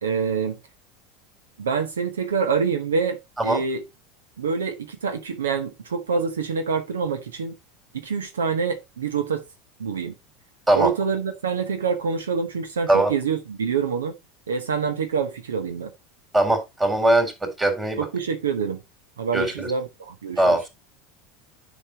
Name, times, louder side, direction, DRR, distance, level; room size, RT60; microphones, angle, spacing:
voice 1, 0.0-0.6 1.6-3.8 4.4-7.5 7.9-9.4 9.8-10.1 10.7-14.1 14.5-15.9 18.0-18.8 19.2-20.6, right 5 dB, 75° right, 1.0 m, -26 dB
voice 2, 16.3-18.0 19.3-19.7 20.4-20.7, right 1 dB, 15° right, 3.4 m, -20 dB
9.9 x 5.2 x 4.2 m
figure-of-eight pair, 80°, 0 cm